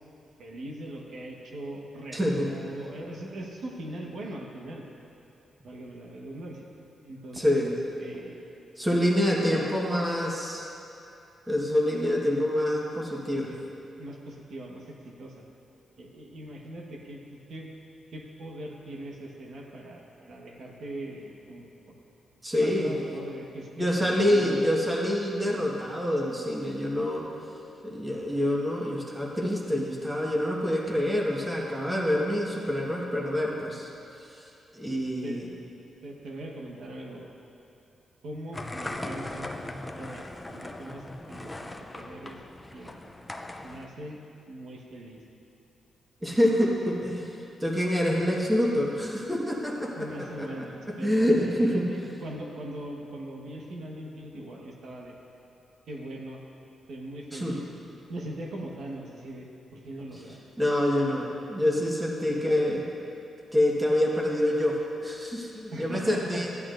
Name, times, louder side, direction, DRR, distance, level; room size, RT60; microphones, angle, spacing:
voice 1, 0.4-4.8 5.6-6.6 7.0-8.4 9.0-9.6 13.5-13.6 14.0-15.4 16.0-17.7 18.1-22.0 22.6-24.6 35.2-35.4 36.0-37.3 38.2-39.5 39.9-42.4 42.7-43.1 43.6-44.2 44.5-45.2 49.9-55.1 55.9-56.4 56.9-57.7 58.1-60.5 62.2-62.4 65.7-66.4, right 1 dB, 70° right, -1 dB, 1.3 m, -40 dB
voice 2, 2.1-2.4 7.3-7.7 8.8-10.7 11.5-13.5 22.4-22.9 23.8-27.2 27.8-33.9 34.7-35.5 46.2-47.3 47.6-50.7 51.0-51.8 57.3-57.5 60.6-62.8 63.5-66.5, left 1 dB, 10° right, -2 dB, 1.3 m, -26 dB
sound 1, 38.5-43.9, left 1 dB, 10° left, 0.5 m, -39 dB
14.5 x 10.5 x 2.6 m, 2.7 s
cardioid pair, 120°, 0 cm